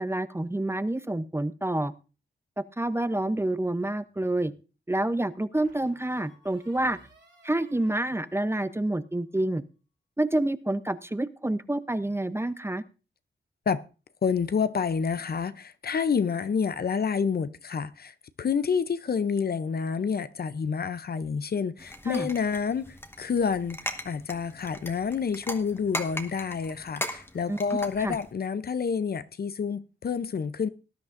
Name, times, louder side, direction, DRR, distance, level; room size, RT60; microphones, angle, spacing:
voice 1, 0.0-1.9 2.8-4.5 4.9-7.0 7.4-9.6 10.2-12.8 22.1-22.3 27.5-27.6 28.0-28.2, right 1 dB, 15° right, 0.6 m, -28 dB
sound 1, 5.5-9.2, right 3 dB, 70° right, 3.3 m, -58 dB
voice 2, 14.2-23.8 24.0-30.7, left 6 dB, 55° left, 0.6 m, -28 dB
sound 2, 21.8-28.3, left 1 dB, 10° left, 1.2 m, -39 dB
18.5 x 10.5 x 2.5 m
wide cardioid pair, 95°, 19 cm